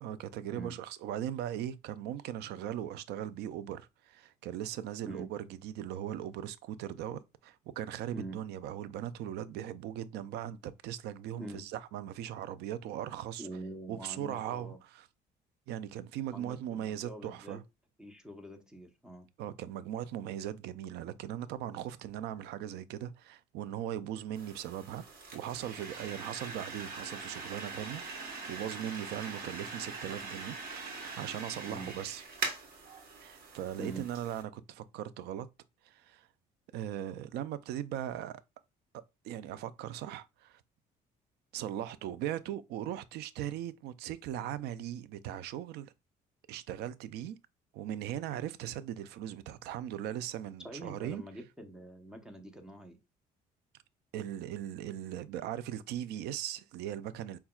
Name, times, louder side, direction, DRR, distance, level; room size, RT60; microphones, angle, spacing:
voice 1, 0.0-5.4 5.6-13.5 13.9-15.0 15.7-17.6 19.4-25.0 25.3-32.2 33.2-35.5 35.8-36.3 36.7-38.4 38.9-40.6 41.5-45.9 46.5-47.4 47.7-51.2 54.1-57.4, right 11 dB, 80° right, 0.4 m, -39 dB
voice 2, 13.4-14.8 16.3-17.6 18.0-19.3 31.6-31.9 33.8-34.0 50.6-53.0, right 1 dB, 5° right, 0.8 m, -45 dB
sound 1, 24.3-34.4, right 4 dB, 60° right, 1.2 m, -42 dB
5.6 x 2.2 x 2.3 m
cardioid pair, 110°, 17 cm